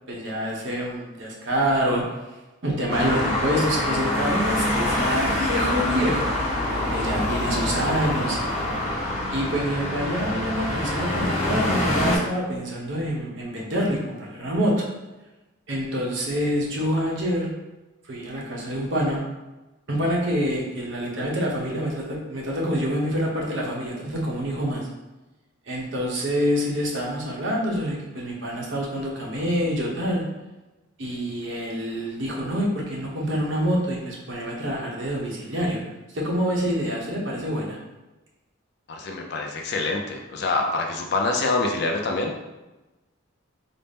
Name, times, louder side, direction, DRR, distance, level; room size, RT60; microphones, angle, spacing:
voice 1, 0.1-2.0 2.6-6.3 6.7-8.7 9.3-14.9 15.7-17.5 18.0-19.2 19.9-24.9 25.7-30.2 31.0-35.8 36.1-37.8, equal, 60° right, -2 dB, 0.8 m, -26 dB
Traffic noise roadway noise, 2.9-12.2, left 1 dB, 30° left, 1.1 m, -25 dB
voice 2, 38.9-42.3, left 3 dB, 50° left, 2 dB, 0.4 m, -25 dB
4.0 x 2.0 x 3.5 m, 1.1 s
head